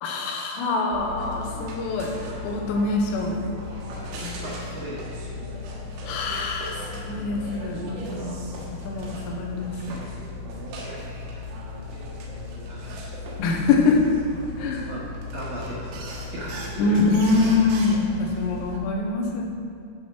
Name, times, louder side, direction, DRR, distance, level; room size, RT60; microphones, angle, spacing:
voice 1, 0.0-2.1 2.4-3.4 6.1-8.4 8.9-10.0 13.4-14.0 14.6-14.9 16.8-19.4, left 3 dB, 90° left, -1 dB, 3.6 m, -24 dB
sound 1, 0.9-18.8, left 2 dB, 90° right, 3.9 m, -36 dB
voice 2, 3.9-5.3 10.7-11.5 11.9-13.4 14.9-15.1 15.3-16.0 16.3-17.0, right 1 dB, 65° right, -8 dB, 2.0 m, -38 dB
12.0 x 4.4 x 6.2 m, 2.4 s
omnidirectional pair, 5.7 m